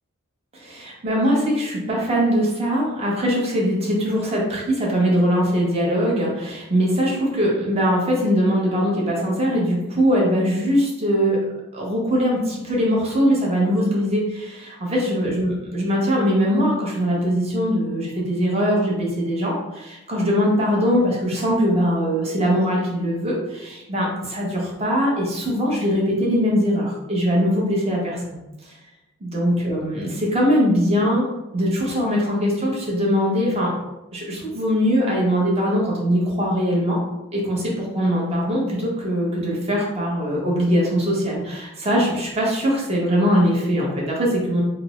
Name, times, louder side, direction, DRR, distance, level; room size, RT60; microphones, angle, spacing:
voice 1, 0.5-11.4 11.7-28.4 29.2-31.3 31.5-33.7 34.1-37.0 37.3-44.6, equal, 30° right, -4 dB, 0.9 m, -21 dB
3.3 x 2.0 x 4.2 m, 0.96 s
head